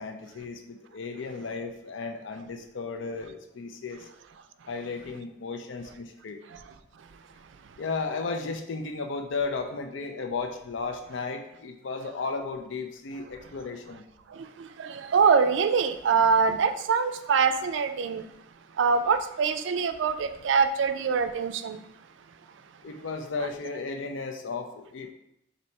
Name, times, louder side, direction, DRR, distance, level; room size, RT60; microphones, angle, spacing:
voice 1, 0.0-4.0 4.7-6.4 7.8-14.1 22.8-25.1, left 4 dB, 80° left, 5 dB, 0.5 m, -34 dB
voice 2, 14.8-18.2 18.8-21.8, right 5 dB, 75° right, 9 dB, 0.3 m, -24 dB
4.4 x 2.7 x 4.1 m, 0.81 s
head